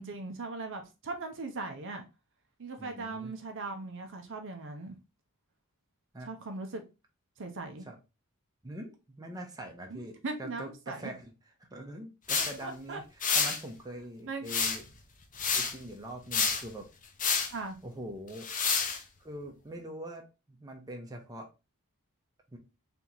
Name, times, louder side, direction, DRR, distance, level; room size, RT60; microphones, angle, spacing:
voice 1, 0.0-2.0 2.6-5.0 6.3-6.8 7.4-7.9 9.9-11.1 12.6-13.0 14.2-14.5 17.5-17.8, right 3 dB, 60° right, 0.7 m, -39 dB
voice 2, 2.8-3.4 6.1-6.3 7.9-8.0 8.6-11.3 11.7-13.0 13.3-14.8 15.5-16.9 17.8-18.5 19.2-21.5 22.5-22.6, right 1 dB, 15° right, 0.8 m, -43 dB
sound 1, 12.3-12.5 13.2-13.6 14.5-14.9 15.4-15.7 16.3-16.6 17.2-17.5 18.4-19.0, left 5 dB, 35° left, 0.7 m, -28 dB
3.4 x 3.0 x 3.9 m
head